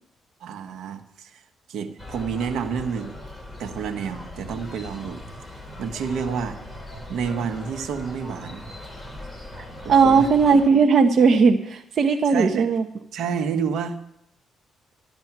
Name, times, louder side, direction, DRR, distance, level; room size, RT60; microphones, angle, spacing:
voice 1, 0.4-1.4 1.7-3.1 3.6-5.2 5.8-6.6 7.1-8.7 9.8-10.3 12.2-12.7 13.1-14.0, right 6 dB, 75° right, 8 dB, 1.4 m, -29 dB
sound 1, 2.0-10.7, left 1 dB, 5° left, 3.2 m, -39 dB
voice 2, 9.9-12.8, right 5 dB, 55° right, 5 dB, 1.0 m, -17 dB
13.5 x 12.5 x 6.1 m, 0.78 s
cardioid pair, 90°, 0 cm